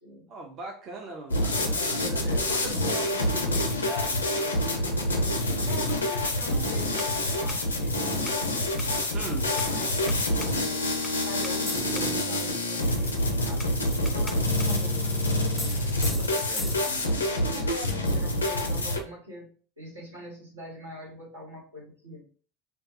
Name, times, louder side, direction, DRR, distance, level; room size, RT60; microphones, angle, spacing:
voice 1, 0.3-4.7 9.1-9.5, right 2 dB, 45° right, 0.6 m, -40 dB
sound 1, 1.3-19.0, left 1 dB, 90° left, 0.4 m, -27 dB
voice 2, 1.9-2.5 5.7-9.0 9.6-10.9 11.2-17.1 17.4-19.5 19.8-22.2, equal, 90° right, 1.1 m, -43 dB
sound 2, 4.9-17.2, left 2 dB, 10° left, 0.4 m, -44 dB
2.3 x 2.2 x 2.7 m
hypercardioid pair, 75°, 0 cm